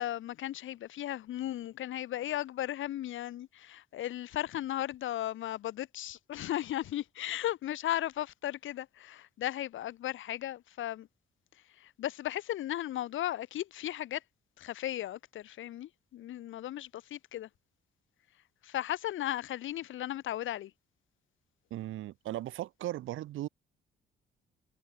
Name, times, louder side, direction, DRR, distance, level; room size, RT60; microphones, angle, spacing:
voice 1, 0.0-11.1 11.8-14.2 14.6-17.5 18.6-20.7, left 13 dB, 80° left, 4.7 m, -36 dB
voice 2, 21.7-23.5, right 14 dB, 85° right, 3.7 m, -37 dB
cardioid pair, 90°, 20 cm